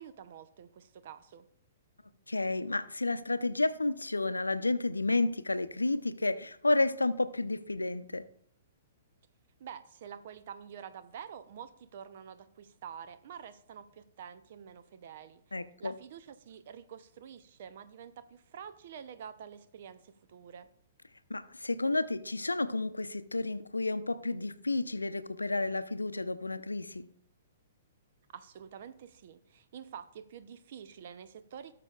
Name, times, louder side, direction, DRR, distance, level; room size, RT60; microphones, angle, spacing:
voice 1, 0.0-1.5 9.6-15.4 15.8-20.7 28.3-31.7, right 8 dB, 55° right, 12 dB, 0.7 m, -48 dB
voice 2, 2.3-8.2 15.5-15.9 21.3-27.1, left 2 dB, 85° left, 13 dB, 0.5 m, -31 dB
16.5 x 6.7 x 2.4 m, 0.64 s
figure-of-eight pair, 115°, 0 cm